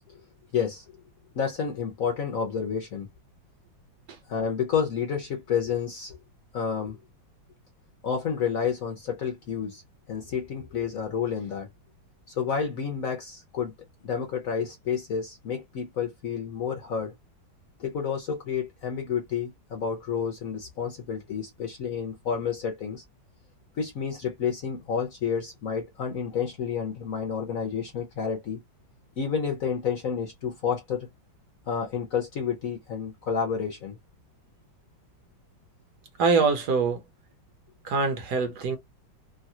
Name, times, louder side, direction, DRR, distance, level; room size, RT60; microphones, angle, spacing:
voice 1, 0.5-0.8 1.3-3.1 4.3-6.2 6.5-7.0 8.0-9.8 10.1-11.7 12.3-13.7 14.0-17.1 17.8-23.0 23.8-28.6 29.2-31.1 31.7-33.9, left 7 dB, 60° left, 0.9 m, -30 dB
voice 2, 36.2-37.0 37.8-38.8, right 4 dB, 65° right, 1.2 m, -24 dB
3.1 x 2.3 x 2.7 m
omnidirectional pair, 2.1 m